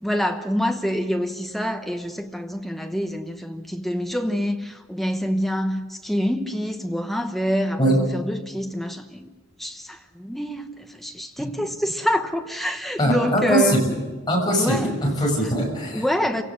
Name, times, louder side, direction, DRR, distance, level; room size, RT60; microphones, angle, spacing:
voice 1, 0.0-9.3 9.6-13.8 14.6-15.0 15.9-16.4, equal, ahead, 1.0 m, -26 dB
voice 2, 13.0-13.6 14.3-16.0, right 1 dB, 20° left, 6.7 m, -21 dB
28.0 x 17.5 x 6.4 m
head